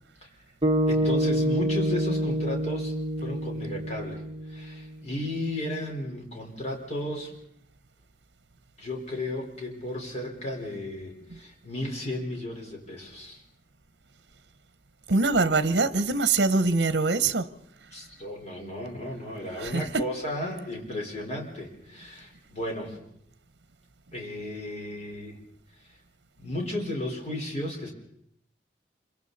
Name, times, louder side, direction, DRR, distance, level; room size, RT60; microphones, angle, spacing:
sound 1, 0.6-5.0, equal, 30° right, 1.3 m, -27 dB
voice 1, 0.9-2.9 3.2-4.2 4.5-7.3 8.8-13.4 17.9-23.0 24.1-25.4 26.4-27.9, left 1 dB, 40° left, 4.4 m, -34 dB
voice 2, 15.1-17.5 19.6-19.9, right 3 dB, 70° right, 0.9 m, -23 dB
26.0 x 24.0 x 4.1 m
head